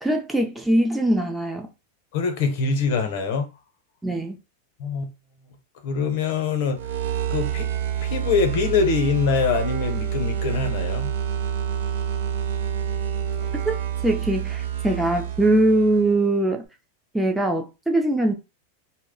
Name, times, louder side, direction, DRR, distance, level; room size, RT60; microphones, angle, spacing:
voice 1, 0.0-1.7 4.0-4.4 13.6-13.7 14.0-16.6 17.1-18.3, right 1 dB, 5° right, 0.5 m, -21 dB
voice 2, 2.1-3.5 4.8-5.1 5.8-6.8 7.3-7.7 8.0-11.1, left 5 dB, 60° left, 0.8 m, -24 dB
sound 1, 6.7-16.2, right 9 dB, 80° right, 0.5 m, -28 dB
2.2 x 2.1 x 3.6 m
supercardioid pair, 135°, 0 cm